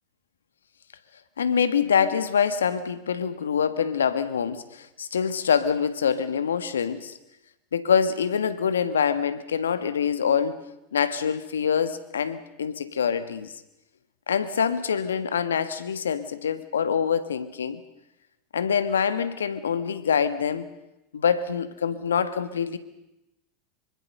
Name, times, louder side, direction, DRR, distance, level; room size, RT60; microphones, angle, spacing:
voice 1, 1.4-7.2 7.7-10.6 10.9-13.5 14.3-17.8 18.5-20.7 21.1-22.8, left 7 dB, 85° left, 13 dB, 1.5 m, -25 dB
25.0 x 24.0 x 6.7 m, 0.92 s
hypercardioid pair, 85°, 0 cm